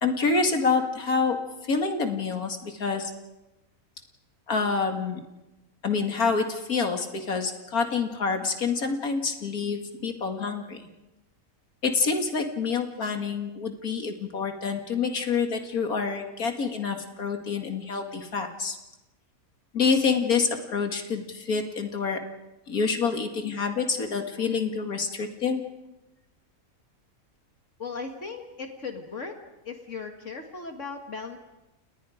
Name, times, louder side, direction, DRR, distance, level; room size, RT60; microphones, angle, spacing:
voice 1, 0.0-1.4 1.6-3.1 4.5-5.2 5.8-10.8 11.8-18.8 19.7-22.2 22.7-25.6, left 5 dB, 85° left, 5 dB, 2.6 m, -27 dB
voice 2, 27.8-29.4 29.6-31.4, left 4 dB, 60° left, 4 dB, 2.1 m, -37 dB
29.5 x 29.5 x 5.1 m, 0.99 s
omnidirectional pair, 1.5 m